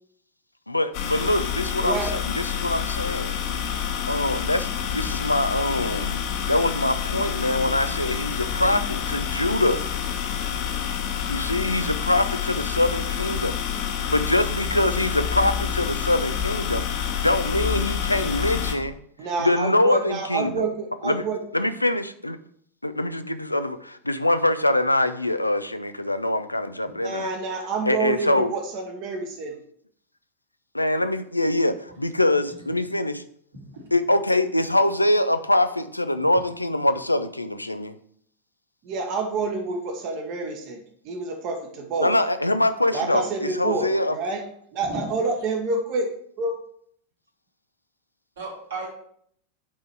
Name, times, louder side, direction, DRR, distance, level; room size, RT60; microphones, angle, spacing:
voice 1, 0.7-3.3 4.1-6.2 6.5-9.8 11.3-13.6 14.1-19.0 19.4-20.7 21.0-21.2 21.5-22.4 22.8-27.3 27.9-28.5 30.7-33.2 33.9-37.9 42.0-44.2, left 1 dB, 85° left, 0.5 m, -24 dB
sound 1, 0.9-18.7, left 8 dB, 45° left, 1.1 m, -28 dB
voice 2, 1.8-2.2 19.2-21.4 27.0-29.5 38.8-42.1 42.9-44.4 44.7-46.1 46.4-46.6, right 3 dB, 40° right, 1.3 m, -28 dB
voice 3, 33.5-33.8 44.8-45.0 48.4-48.9, right 2 dB, 65° right, 2.8 m, -35 dB
8.4 x 4.0 x 4.5 m
figure-of-eight pair, 90°, 0 cm